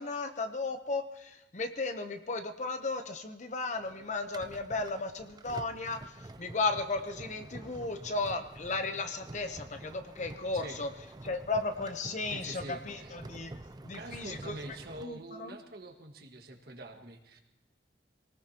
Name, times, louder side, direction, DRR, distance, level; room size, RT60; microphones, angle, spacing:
voice 1, 0.0-10.9 11.2-13.5 13.8-15.6, left 3 dB, 40° left, 7 dB, 0.8 m, -35 dB
sound 1, 3.7-15.0, right 2 dB, 20° right, 0.5 m, -48 dB
voice 2, 12.3-13.2 14.0-17.4, right 2 dB, 60° right, 3 dB, 1.7 m, -46 dB
26.5 x 18.5 x 2.9 m, 0.93 s
head